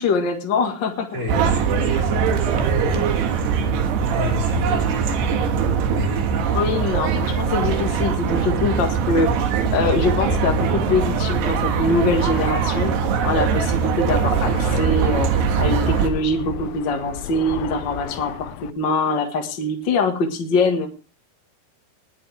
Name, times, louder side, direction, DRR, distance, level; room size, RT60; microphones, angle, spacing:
voice 1, 0.0-1.2 1.8-2.0 2.8-3.1 3.6-3.7 4.1-4.2 6.5-12.9 13.2-15.3 15.6-20.9, left 3 dB, 55° left, 4 dB, 1.2 m, -23 dB
voice 2, 1.1-3.7 4.1-6.5, left 3 dB, 20° right, 1 dB, 3.5 m, -31 dB
sound 1, 1.3-16.1, right 6 dB, 80° right, 3.6 m, -21 dB
Fixed-wing aircraft airplane, 9.9-18.7, left 11 dB, 80° left, 2.8 m, -33 dB
20.0 x 10.0 x 3.4 m, 0.35 s
omnidirectional pair, 4.8 m